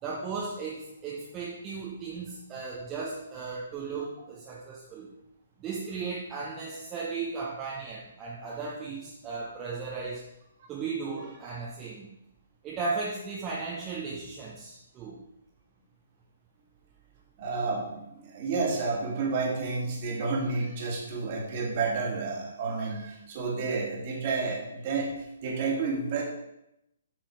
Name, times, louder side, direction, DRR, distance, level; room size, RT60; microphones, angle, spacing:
voice 1, 0.0-5.1 5.6-10.2 10.7-12.1 12.6-15.2, right 4 dB, 20° right, -5 dB, 1.3 m, -36 dB
voice 2, 17.4-26.2, right 4 dB, 35° right, -1 dB, 2.2 m, -30 dB
8.5 x 6.2 x 4.7 m, 0.85 s
figure-of-eight pair, 130°, 0 cm